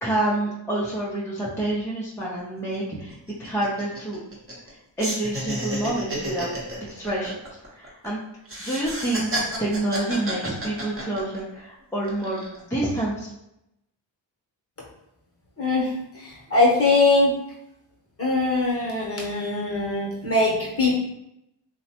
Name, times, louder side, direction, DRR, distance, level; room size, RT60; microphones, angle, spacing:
voice 1, 0.0-4.2 5.0-6.6 6.9-7.3 7.7-8.2 8.6-9.3 9.6-13.3, right 1 dB, 5° left, -6 dB, 0.6 m, -28 dB
sound 1, 2.2-2.3 2.6-2.8 3.1-4.7 5.0-8.1 8.5-11.6 12.0-12.6, right 1 dB, 25° right, 0.9 m, -32 dB
voice 2, 15.6-17.4 18.2-21.0, left 2 dB, 30° left, -3 dB, 1.0 m, -22 dB
2.9 x 2.1 x 2.8 m, 0.85 s
cardioid pair, 65°, 49 cm